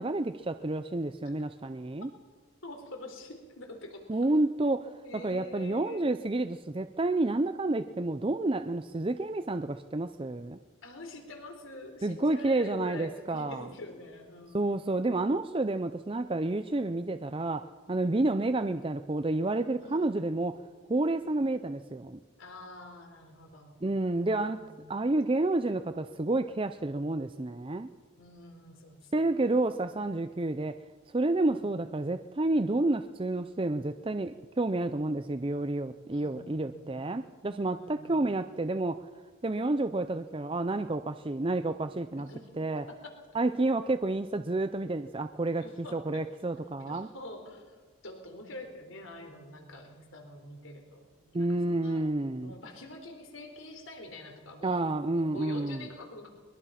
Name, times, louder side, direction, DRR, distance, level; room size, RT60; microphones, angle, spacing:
voice 1, 0.0-2.1 4.1-10.6 12.0-13.7 14.5-20.5 20.9-22.2 23.8-24.6 24.9-27.9 29.1-30.8 31.1-39.1 39.4-42.3 42.6-42.8 43.3-47.1 51.3-52.5 54.6-55.9, right 2 dB, 25° right, 9 dB, 0.5 m, -30 dB
voice 2, 2.6-4.0 5.0-6.1 10.8-14.8 18.0-18.6 19.8-20.3 21.2-21.5 22.4-23.8 24.1-25.0 28.2-29.3 31.4-31.7 36.1-37.0 37.6-38.2 42.1-43.0 45.6-46.3 46.9-52.0 52.4-54.8 55.1-56.3, left 1 dB, 70° left, 4 dB, 4.1 m, -46 dB
22.0 x 22.0 x 5.8 m, 1.5 s
head